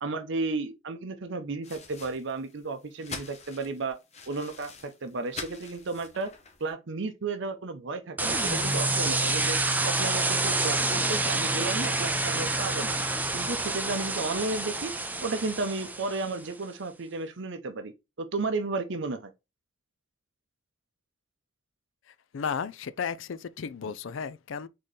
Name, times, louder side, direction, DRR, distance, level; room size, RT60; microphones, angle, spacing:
voice 1, 0.0-4.0 4.3-6.3 6.6-9.6 9.8-13.0 13.3-14.9 15.2-17.9 18.2-19.3, right 3 dB, 60° right, 0.7 m, -33 dB
sound 1, 1.6-6.7, left 4 dB, 35° left, 0.9 m, -45 dB
sound 2, 8.2-16.4, right 2 dB, 10° right, 0.5 m, -28 dB
voice 2, 22.3-24.7, left 6 dB, 65° left, 0.4 m, -34 dB
4.2 x 3.8 x 3.2 m
head